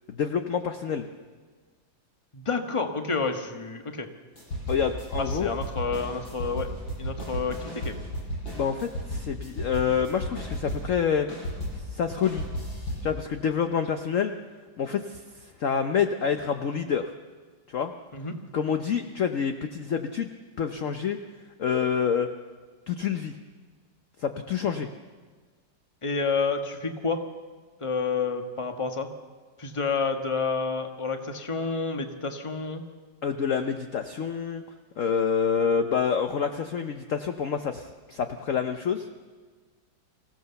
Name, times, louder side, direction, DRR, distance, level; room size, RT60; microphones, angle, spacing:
voice 1, 0.1-1.1 4.7-5.5 8.5-11.3 11.7-12.4 13.0-14.3 14.8-17.1 17.7-17.9 18.5-20.3 20.6-21.2 21.6-22.3 22.9-23.4 24.2-24.9 33.2-34.6 35.0-39.1, left 7 dB, 55° left, 7 dB, 1.0 m, -27 dB
voice 2, 2.3-4.1 5.3-6.7 7.0-8.0 18.1-18.4 26.0-27.2 27.8-29.1 29.6-32.8, left 4 dB, 20° left, 5 dB, 1.2 m, -29 dB
sound 1, 4.4-11.0 11.3-13.1, equal, 80° left, 8.5 m, -34 dB
25.5 x 16.0 x 7.0 m, 1.5 s
omnidirectional pair, 2.1 m